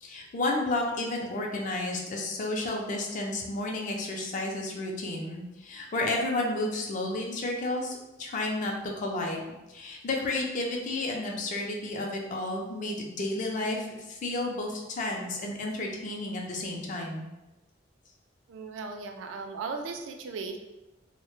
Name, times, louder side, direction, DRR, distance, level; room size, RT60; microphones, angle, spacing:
voice 1, 0.0-9.4 9.7-17.2, left 2 dB, 40° left, 0 dB, 0.4 m, -32 dB
voice 2, 18.5-20.6, right 4 dB, 75° right, 5 dB, 0.3 m, -37 dB
2.1 x 2.0 x 3.0 m, 1.0 s
head